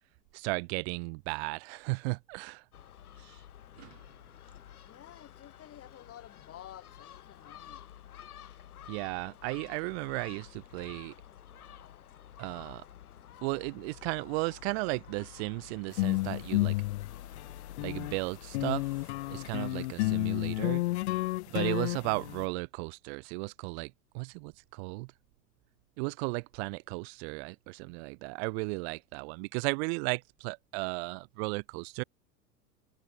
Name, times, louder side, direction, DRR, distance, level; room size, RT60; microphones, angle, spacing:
voice 1, 0.3-2.6 3.2-3.4 3.8-4.0 8.9-11.1 12.4-12.8 13.4-16.8 17.8-18.9 19.3-20.8 21.5-25.1 26.0-32.0, right 30 dB, 40° right, 1.1 m, -35 dB
Gull seagull, 2.7-19.7, left 10 dB, 65° left, 1.5 m, -51 dB
voice 2, 4.8-7.9, left 12 dB, 30° left, 4.9 m, -51 dB
sound 1, 15.9-18.2 18.5-22.5, left 19 dB, 45° left, 0.6 m, -31 dB
figure-of-eight pair, 85°, 47 cm